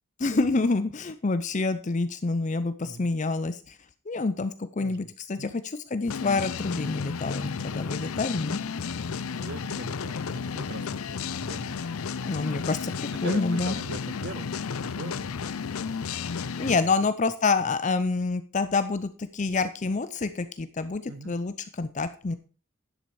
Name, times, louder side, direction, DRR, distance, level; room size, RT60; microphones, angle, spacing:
voice 1, 0.2-3.8 4.1-8.6 12.3-13.8 16.6-22.4, left 3 dB, 35° left, 0.5 m, -27 dB
voice 2, 4.8-5.6 9.4-12.0 13.2-15.5 16.8-16.9 17.6-17.8 21.1-21.4, right 3 dB, 50° right, 0.6 m, -42 dB
sound 1, 6.1-16.8, left 6 dB, 85° left, 0.6 m, -33 dB
11.0 x 7.3 x 4.7 m
head